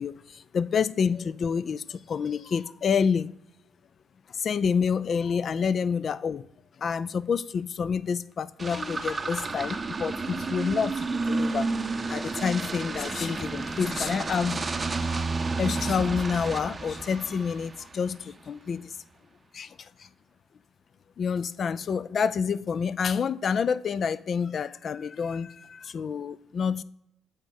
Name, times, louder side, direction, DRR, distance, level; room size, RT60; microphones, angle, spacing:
voice 1, 0.0-3.3 4.3-6.5 6.8-11.7 12.1-14.6 15.1-15.2 15.6-19.0 19.5-20.1 21.2-26.8, left 6 dB, 50° left, 0.3 m, -28 dB
sound 1, 8.6-18.1, right 3 dB, 30° right, 0.6 m, -31 dB
8.4 x 3.6 x 5.1 m
cardioid pair, 90°, 0 cm